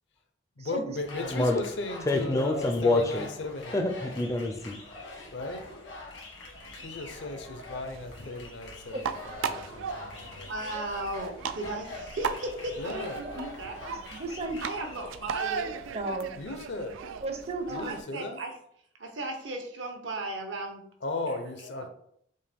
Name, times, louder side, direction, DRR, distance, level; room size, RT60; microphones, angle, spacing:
voice 1, 0.6-3.8 5.3-5.7 6.7-10.5 12.8-13.2 16.4-17.0 17.7-18.4 21.0-21.9, left 2 dB, 65° left, 7 dB, 0.6 m, -36 dB
sound 1, 1.0-15.4, left 2 dB, 80° left, 1.4 m, -44 dB
voice 2, 1.3-1.6 2.1-3.3 3.7-4.8, left 2 dB, 15° left, 5 dB, 0.4 m, -26 dB
sound 2, 6.5-18.0, right 6 dB, 90° right, 0.3 m, -38 dB
voice 3, 10.5-13.1 13.4-13.8 14.1-14.2 14.6-15.8 17.6-18.5 19.0-20.8, right 2 dB, 70° right, 4 dB, 0.7 m, -36 dB
voice 4, 13.1-13.5 13.8-14.6 15.9-16.3 17.2-18.0, right 2 dB, 35° right, 5 dB, 0.5 m, -34 dB
5.4 x 2.1 x 3.4 m, 0.67 s
head